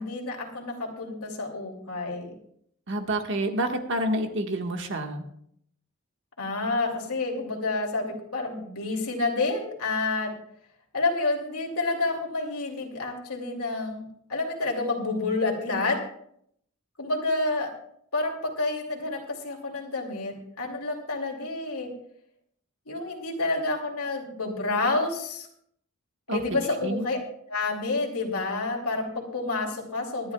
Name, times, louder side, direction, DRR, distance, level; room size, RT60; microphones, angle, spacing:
voice 1, 0.0-2.4 6.4-10.3 10.9-14.0 14.3-16.0 17.0-17.7 18.1-21.9 22.9-25.5 26.3-27.2 27.5-30.3, left 3 dB, 85° left, 1 dB, 2.6 m, -29 dB
voice 2, 2.9-5.2 26.3-26.4 26.8-27.0, right 1 dB, 55° right, 4 dB, 1.6 m, -28 dB
25.5 x 11.0 x 2.3 m, 0.70 s
head